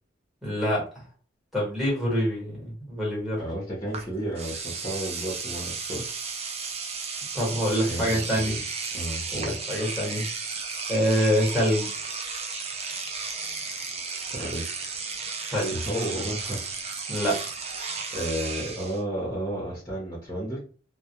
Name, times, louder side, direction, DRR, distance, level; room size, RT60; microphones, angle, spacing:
voice 1, 0.4-0.8 1.5-3.4 7.3-8.5 9.3-10.2 10.9-11.9 15.5-15.7 17.1-17.4, equal, ahead, -4 dB, 1.2 m, -25 dB
voice 2, 3.4-6.1 7.8-8.6 8.9-9.6 14.3-14.9 15.7-16.6 18.1-20.6, right 1 dB, 15° left, -5 dB, 0.8 m, -32 dB
Engine / Domestic sounds home sounds, 3.9-4.0 4.3-19.0, right 5 dB, 35° right, 0.4 m, -34 dB
2.2 x 2.1 x 2.8 m, 0.37 s
head